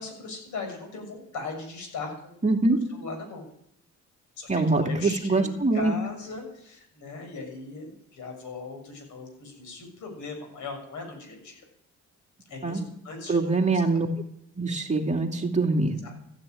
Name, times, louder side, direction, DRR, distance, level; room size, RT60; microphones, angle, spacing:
voice 1, 0.0-2.4 2.9-3.4 4.4-11.6 12.5-13.6 13.9-14.0 15.8-16.2, left 3 dB, 75° left, 4 dB, 6.7 m, -39 dB
voice 2, 2.4-2.8 4.5-5.9 12.6-12.8 13.3-14.1 14.5-15.9, right 3 dB, 25° right, 1 dB, 2.6 m, -24 dB
14.5 x 10.0 x 9.2 m, 0.74 s
cardioid pair, 90°, 30 cm